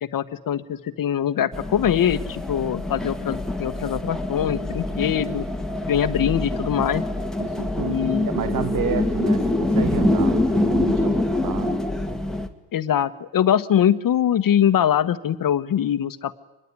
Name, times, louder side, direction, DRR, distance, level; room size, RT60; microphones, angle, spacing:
voice 1, 0.0-5.5 5.9-7.0 7.8-8.3 12.7-16.4, left 9 dB, 55° left, 13 dB, 1.3 m, -23 dB
sound 1, 1.5-12.5, left 2 dB, ahead, 2.0 m, -25 dB
voice 2, 7.4-11.8, right 8 dB, 55° right, 10 dB, 1.5 m, -30 dB
25.5 x 21.5 x 9.7 m, 0.96 s
cardioid pair, 115°, 39 cm